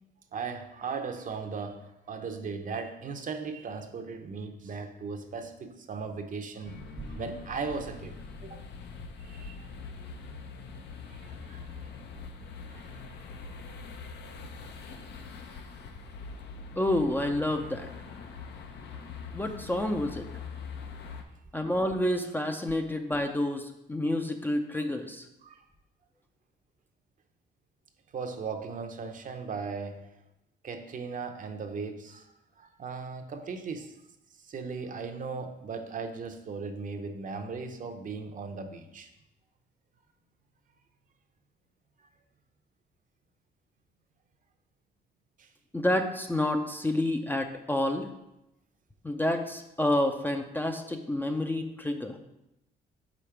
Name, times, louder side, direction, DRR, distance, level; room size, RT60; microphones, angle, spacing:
voice 1, 0.3-8.7 9.2-9.7 11.1-12.0 12.4-12.9 13.3-13.4 25.4-25.7 28.1-30.1 30.6-34.0 34.3-39.1 42.0-42.1 45.4-45.5, right 5 dB, 45° right, 6 dB, 0.8 m, -38 dB
sound 1, 6.6-21.2, left 4 dB, 70° left, 0.8 m, -43 dB
voice 2, 16.8-17.9 19.3-20.3 21.5-25.2 45.7-48.1 49.0-52.2, left 1 dB, 10° left, 5 dB, 0.5 m, -29 dB
5.1 x 4.1 x 5.7 m, 0.88 s
cardioid pair, 105°, 18 cm